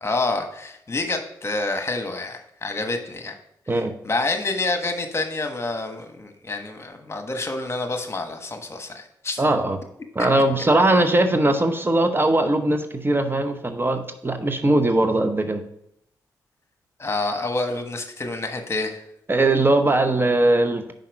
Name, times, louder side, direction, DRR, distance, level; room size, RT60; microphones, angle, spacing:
voice 1, 0.0-3.3 3.7-3.8 4.0-9.4 17.0-19.0, left 2 dB, 35° left, 5 dB, 1.3 m, -28 dB
voice 2, 9.4-9.8 10.1-15.6 19.3-20.9, right 2 dB, 30° right, 7 dB, 0.8 m, -20 dB
5.7 x 5.2 x 6.1 m, 0.75 s
supercardioid pair, 45°, 8 cm